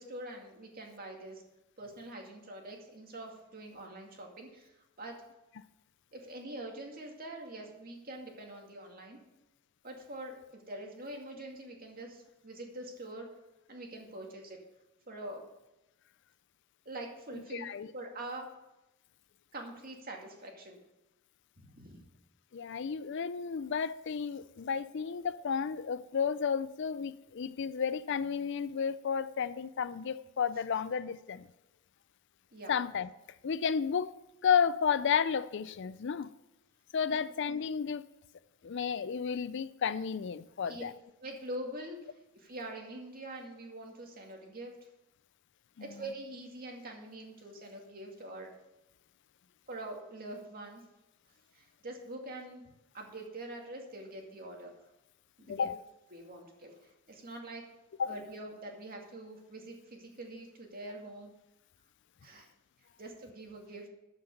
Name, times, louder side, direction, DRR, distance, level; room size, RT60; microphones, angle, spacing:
voice 1, 0.0-1.4 1.8-4.7 5.0-5.2 6.1-9.2 9.8-13.3 13.7-14.7 15.1-15.5 16.9-17.7 17.9-18.6 19.5-20.8 21.6-22.0 32.5-32.7 37.0-37.2 40.7-40.8 41.2-44.7 45.8-48.5 49.7-50.8 51.5-52.6 52.9-54.7 55.4-55.7 56.1-57.7 58.0-61.3 62.2-62.5 63.0-63.9, right 1 dB, 40° right, 2.3 m, -44 dB
voice 2, 17.5-17.9 22.5-31.5 32.7-33.1 33.4-34.1 34.4-36.3 36.9-38.0 38.6-40.9 45.8-45.9 55.5-55.8 58.0-58.1, left 6 dB, 55° left, 0.4 m, -32 dB
13.0 x 5.9 x 7.0 m
head